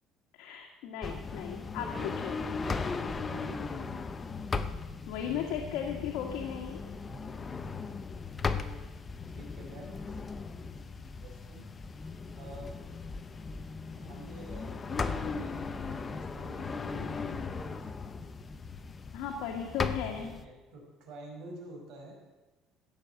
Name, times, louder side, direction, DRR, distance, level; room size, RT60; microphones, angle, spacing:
voice 1, 0.3-2.4 5.1-6.8 19.1-20.3, left 8 dB, 75° left, 0 dB, 2.0 m, -36 dB
sound 1, 1.0-20.4, left 4 dB, 20° left, 0.7 m, -37 dB
voice 2, 2.6-4.0 7.1-7.9 8.4-8.8 9.3-10.7 11.0-11.7 12.3-12.7 14.0-17.9 20.1-22.1, right 1 dB, 60° right, 0 dB, 5.1 m, -49 dB
15.0 x 8.7 x 7.9 m, 1.2 s
cardioid pair, 160°, 0 cm